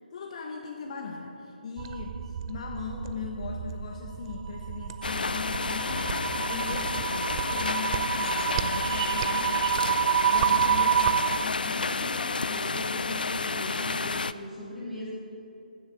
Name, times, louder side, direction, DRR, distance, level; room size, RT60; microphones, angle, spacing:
voice 1, 0.1-7.0 7.3-9.7 10.3-12.1 12.4-12.6, left 5 dB, 45° left, 1 dB, 1.2 m, -39 dB
sound 1, 1.8-11.5, right 8 dB, 30° right, 0.5 m, -29 dB
sound 2, 5.0-14.3, left 4 dB, 70° left, 0.4 m, -31 dB
voice 2, 6.4-6.9 11.6-15.1, left 1 dB, ahead, -10 dB, 2.9 m, -39 dB
15.0 x 7.1 x 6.7 m, 2.8 s
figure-of-eight pair, 150°, 5 cm